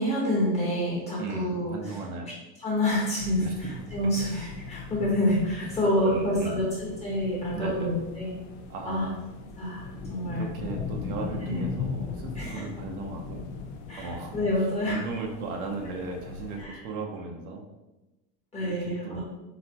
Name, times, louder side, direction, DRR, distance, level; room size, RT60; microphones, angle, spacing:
voice 1, 0.0-1.7 2.6-8.3 8.9-9.1 9.6-10.4 11.4-11.6 12.3-12.6 13.9-15.0 16.6-16.8 18.5-19.2, left 1 dB, 15° left, -6 dB, 1.1 m, -28 dB
voice 2, 1.2-2.3 3.3-3.6 6.0-6.6 7.5-7.9 8.7-9.2 10.3-13.4 14.0-14.4 14.9-17.6 18.6-19.2, right 3 dB, 60° right, 1 dB, 0.8 m, -36 dB
sound 1, 3.2-16.7, left 5 dB, 60° left, 0.6 m, -39 dB
4.1 x 3.9 x 2.9 m, 1.0 s
cardioid pair, 170°, 47 cm